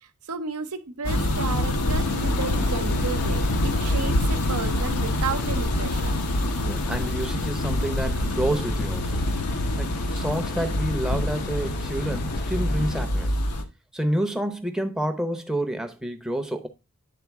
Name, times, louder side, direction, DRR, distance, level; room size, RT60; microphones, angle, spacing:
voice 1, 0.0-6.1, right 4 dB, 70° right, 0.8 m, -33 dB
sound 1, 1.0-13.6, left 1 dB, 85° left, 1.0 m, -26 dB
sound 2, 2.0-13.1, left 4 dB, 45° left, 0.6 m, -36 dB
voice 2, 6.6-9.2 9.8-13.3 13.9-16.7, right 1 dB, 5° right, 0.7 m, -29 dB
9.4 x 3.8 x 3.5 m
head